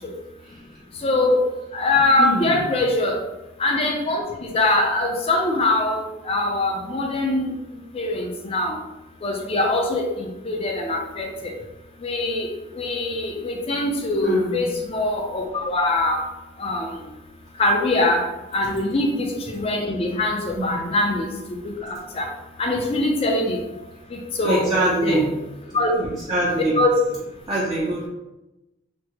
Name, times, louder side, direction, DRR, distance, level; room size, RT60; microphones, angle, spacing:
voice 1, 1.0-1.4 1.7-3.2 3.6-4.2 4.5-7.5 7.9-8.8 9.2-11.3 12.0-12.5 12.8-16.2 16.6-17.0 17.6-18.2 18.5-21.3 21.6-22.3 22.6-23.6 24.1-25.2 25.7-25.9 26.8-27.0, left 2 dB, 30° left, 2 dB, 0.4 m, -22 dB
voice 2, 2.2-2.6 14.2-14.7 20.5-20.8 23.7-23.8 24.4-25.3 25.7-26.8 27.5-28.1, right 1 dB, 25° right, -6 dB, 0.5 m, -24 dB
3.4 x 2.0 x 2.9 m, 0.99 s
head